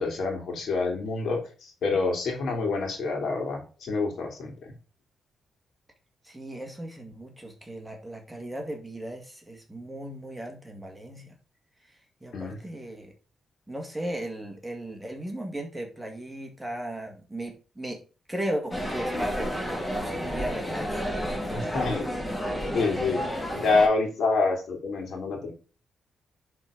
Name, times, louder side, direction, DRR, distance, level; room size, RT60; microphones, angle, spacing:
voice 1, 0.0-4.5 12.3-12.6 21.5-22.1 22.7-23.2 23.5-25.5, left 3 dB, 65° left, 2 dB, 2.8 m, -27 dB
voice 2, 6.2-11.3 12.2-13.1 13.7-18.0 18.3-21.0 21.3-21.6, right 1 dB, 5° right, 1 dB, 2.1 m, -36 dB
sound 1, 18.7-23.9, equal, 10° left, 1.9 m, -31 dB
10.5 x 4.3 x 5.0 m, 0.36 s
cardioid pair, 120°, 0 cm